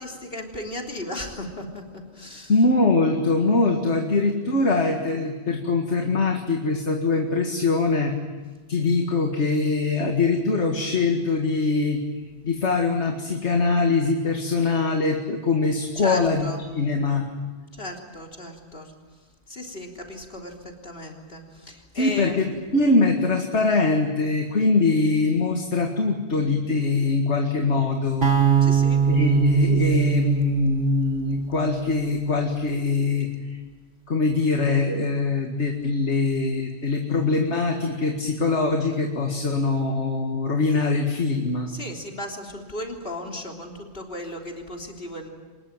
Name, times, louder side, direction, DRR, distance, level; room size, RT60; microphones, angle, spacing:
voice 1, 0.0-1.8 2.1-2.5 16.0-16.6 17.7-18.9 19.5-22.4 28.6-29.0 41.7-45.3, left 1 dB, 55° left, 1 dB, 3.7 m, -35 dB
voice 2, 2.5-8.2 8.7-12.0 12.4-17.2 21.9-28.3 29.0-33.6 34.1-41.7, left 3 dB, 85° left, 3 dB, 2.2 m, -23 dB
sound 1, 28.2-32.4, right 7 dB, 45° right, 2.5 m, -22 dB
25.0 x 21.0 x 9.0 m, 1.3 s
omnidirectional pair, 1.1 m